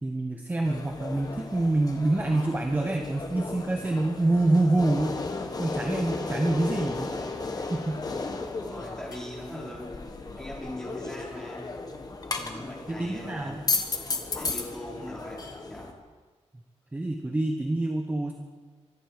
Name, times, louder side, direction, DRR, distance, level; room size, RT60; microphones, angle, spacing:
voice 1, 0.0-5.2 5.6-7.1 7.5-8.0 12.4-13.6 16.9-18.3, right 2 dB, 15° right, 3 dB, 1.1 m, -27 dB
sound 1, 0.6-15.9, left 3 dB, 35° left, 1.4 m, -35 dB
voice 2, 8.5-9.9 10.4-11.7 12.5-13.6 14.4-15.9, left 1 dB, 5° left, -5 dB, 4.6 m, -40 dB
24.0 x 11.5 x 5.0 m, 1.4 s
wide cardioid pair, 170°, 12 cm